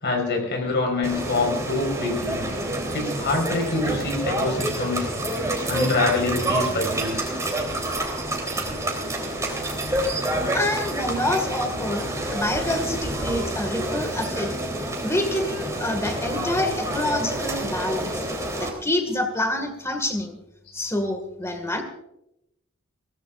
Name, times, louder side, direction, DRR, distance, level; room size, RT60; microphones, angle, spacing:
voice 1, 0.0-2.4 2.9-5.1 5.7-7.3, left 3 dB, 55° left, 3 dB, 4.8 m, -25 dB
sound 1, 1.0-18.7, right 1 dB, 15° right, 3.5 m, -28 dB
voice 2, 10.5-14.5 15.0-18.2 18.6-20.4 20.7-21.8, left 1 dB, 15° left, 6 dB, 1.9 m, -27 dB
23.0 x 17.5 x 2.5 m, 0.84 s
head